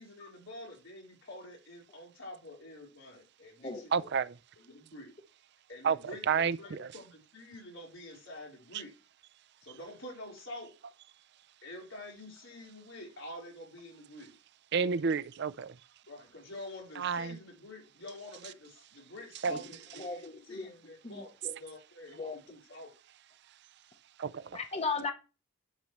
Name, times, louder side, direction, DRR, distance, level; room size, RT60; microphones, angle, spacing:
voice 1, 0.0-4.1 4.6-5.2 5.7-8.9 9.6-10.7 11.6-14.3 16.1-22.9, left 1 dB, 90° left, 4.2 m, -47 dB
voice 2, 3.9-4.3 5.8-6.9 14.7-15.8 17.0-17.4 19.4-19.6 24.2-24.6, right 6 dB, 60° right, 0.5 m, -30 dB
voice 3, 20.0-20.8 21.0-21.1 21.4-21.5 22.2-22.4 24.5-25.1, left 4 dB, 35° left, 0.9 m, -36 dB
10.5 x 6.6 x 3.1 m
head